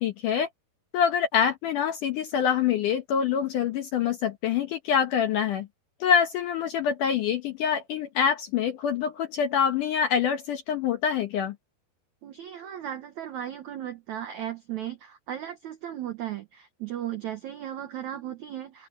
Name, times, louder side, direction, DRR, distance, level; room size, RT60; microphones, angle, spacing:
voice 1, 0.0-0.5 0.9-5.7 6.0-11.6, left 8 dB, 70° left, 2.1 m, -25 dB
voice 2, 12.2-18.9, right 11 dB, 80° right, 1.7 m, -36 dB
omnidirectional pair, 4.9 m